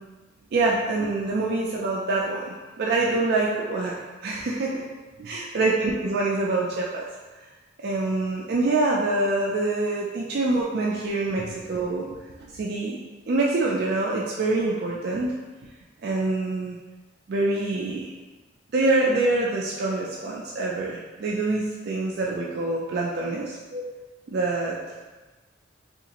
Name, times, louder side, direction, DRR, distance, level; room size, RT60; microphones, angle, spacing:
voice 1, 0.5-3.9 4.2-4.8 5.2-7.0 7.8-12.2 12.5-13.0 13.3-15.3 16.0-16.8 17.3-18.1 18.7-23.8 24.3-24.8, right 2 dB, 55° right, -3 dB, 0.3 m, -25 dB
3.8 x 2.4 x 2.8 m, 1.2 s
head